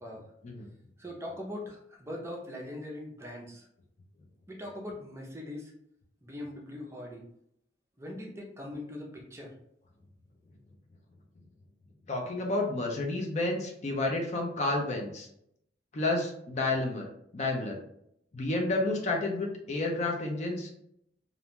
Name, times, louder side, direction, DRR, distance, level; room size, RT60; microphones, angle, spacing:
voice 1, 1.0-3.7 4.5-5.7 6.2-7.2 8.0-9.5, left 1 dB, 15° right, -1 dB, 0.5 m, -41 dB
voice 2, 12.1-15.3 15.9-17.1 17.3-17.8 18.3-20.7, left 2 dB, 40° left, 1 dB, 0.5 m, -30 dB
2.5 x 2.2 x 2.9 m, 0.74 s
head